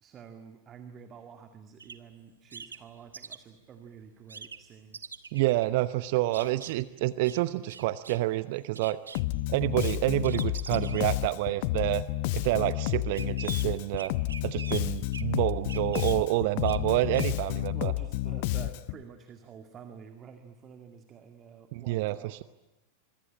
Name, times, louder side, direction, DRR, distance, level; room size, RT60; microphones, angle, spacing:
voice 1, 0.0-5.0 17.7-22.4, right 7 dB, 30° right, 7 dB, 2.0 m, -49 dB
sound 1, 1.8-2.0 2.5-3.4 4.3-4.6 4.9-5.7 6.3-6.7 7.2-7.4 7.7-8.3 8.6-9.2 9.8-9.9 10.2-11.3 12.0-12.3 13.1-13.7 14.0-14.8 15.1-15.3 15.7-16.1 16.6-16.9 17.1-17.2, right 5 dB, 75° right, 1.3 m, -43 dB
voice 2, 5.3-9.0 9.5-12.0 12.3-14.1 14.4-17.9 21.7-22.4, right 17 dB, 50° right, 15 dB, 0.9 m, -28 dB
Bass guitar, 9.1-19.0, left 18 dB, 50° left, 0.8 m, -31 dB
26.0 x 23.5 x 8.8 m, 0.98 s
figure-of-eight pair, 90°, 0 cm